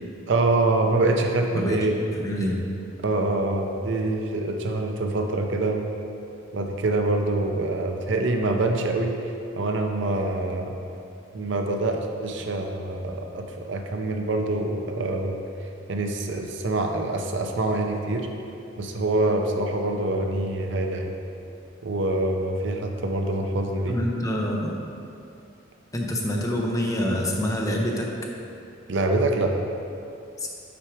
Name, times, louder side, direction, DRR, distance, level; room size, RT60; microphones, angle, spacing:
voice 1, 0.3-1.9 3.0-5.9 6.5-9.2 9.6-10.8 11.3-15.4 15.9-18.3 18.8-21.1 21.8-24.0 28.9-29.6, right 2 dB, 65° right, 3 dB, 0.6 m, -25 dB
voice 2, 1.5-1.9 2.2-2.6 23.9-24.7 25.9-28.1, equal, 15° left, -1 dB, 0.6 m, -26 dB
5.9 x 4.6 x 4.9 m, 2.6 s
head